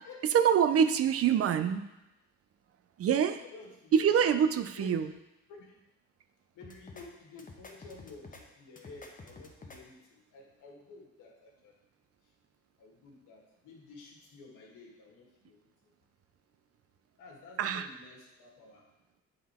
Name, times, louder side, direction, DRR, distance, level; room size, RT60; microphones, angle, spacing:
voice 1, 0.3-1.9 3.0-3.4 3.9-5.1 17.6-17.9, right 8 dB, 50° right, 10 dB, 0.5 m, -25 dB
voice 2, 3.4-4.2 4.5-5.1 5.5-5.8 6.5-11.7 12.8-15.9 17.2-18.8, left 3 dB, 85° left, -1 dB, 1.6 m, -52 dB
sound 1, 6.6-7.0 7.4-8.4 8.8-9.8, left 3 dB, 25° left, 1.0 m, -49 dB
7.6 x 3.9 x 4.2 m, 0.94 s
cardioid pair, 90°, 30 cm